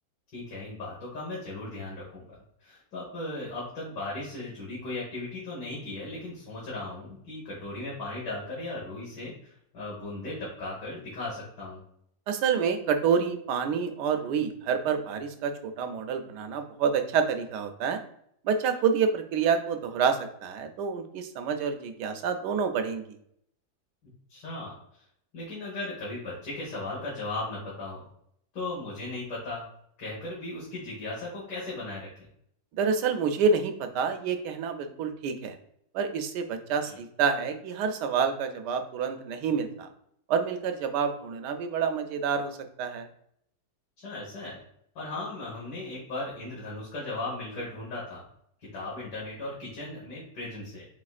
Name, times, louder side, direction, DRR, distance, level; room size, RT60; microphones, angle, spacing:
voice 1, 0.3-2.2 2.6-11.8 24.3-24.7 25.3-28.0 28.5-29.6 30.0-32.1 36.8-37.0 44.0-44.6 45.0-48.2 48.7-50.9, left 2 dB, 90° left, -6 dB, 2.0 m, -37 dB
voice 2, 12.3-18.0 18.4-23.2 32.7-35.6 35.9-39.9 40.3-43.1, right 6 dB, 80° right, 7 dB, 1.2 m, -28 dB
4.9 x 3.7 x 2.4 m, 0.69 s
omnidirectional pair, 1.9 m